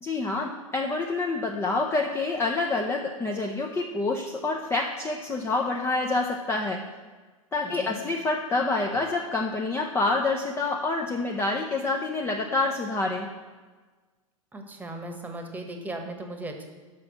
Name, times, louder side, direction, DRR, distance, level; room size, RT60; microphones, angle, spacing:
voice 1, 0.0-6.8 7.5-13.3, left 3 dB, 15° left, 1 dB, 0.6 m, -27 dB
voice 2, 7.6-8.0 14.5-16.7, right 2 dB, 10° right, 3 dB, 1.2 m, -37 dB
6.0 x 5.9 x 6.9 m, 1.3 s
hypercardioid pair, 100°, 18 cm